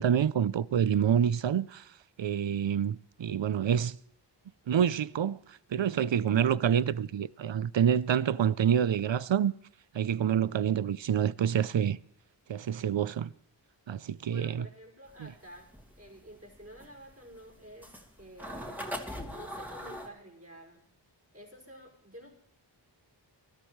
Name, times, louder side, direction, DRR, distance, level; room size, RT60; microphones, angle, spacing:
voice 1, 0.0-1.8 2.2-4.0 4.7-5.4 5.7-9.5 9.9-12.0 12.5-13.3 13.9-14.7 15.2-15.3, right 8 dB, 75° right, 0.6 m, -27 dB
voice 2, 14.2-15.7 16.0-18.8 19.3-20.8 21.3-22.3, equal, 30° right, 5.8 m, -50 dB
sound 1, 15.1-20.1, equal, 5° right, 2.9 m, -40 dB
23.0 x 13.5 x 3.2 m
wide cardioid pair, 45°, 45 cm